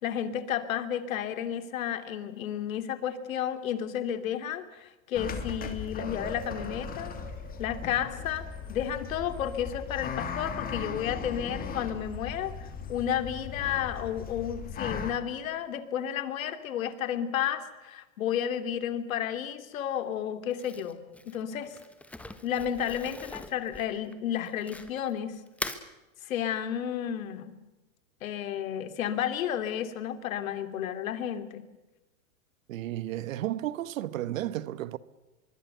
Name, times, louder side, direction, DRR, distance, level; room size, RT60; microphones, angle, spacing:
voice 1, 0.0-7.1 7.6-21.0 21.3-21.8 22.4-25.4 26.2-27.6 28.2-31.6, left 9 dB, 70° left, 3.0 m, -32 dB
sound 1, 5.1-15.1, left 6 dB, 20° left, 3.1 m, -38 dB
sound 2, 6.0-9.5, right 5 dB, 20° right, 3.0 m, -47 dB
Crumpling crinkling, 20.5-25.1 25.5-25.9, left 1 dB, 5° left, 1.4 m, -41 dB
voice 2, 32.7-35.0, right 13 dB, 70° right, 1.3 m, -33 dB
24.5 x 23.0 x 6.9 m
hypercardioid pair, 135°, 42 cm